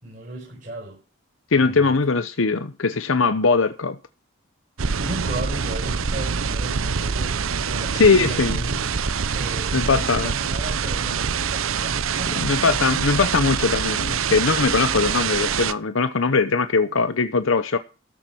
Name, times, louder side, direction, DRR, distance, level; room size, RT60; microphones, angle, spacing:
voice 1, 0.0-1.0 1.5-1.9 5.0-12.6, right 2 dB, 40° right, 5.0 m, -36 dB
voice 2, 1.5-4.0 7.9-8.6 9.7-10.3 12.4-17.8, left 4 dB, 70° left, 0.8 m, -20 dB
sound 1, 4.8-15.7, right 6 dB, 80° right, 0.8 m, -25 dB
13.5 x 7.3 x 6.1 m
head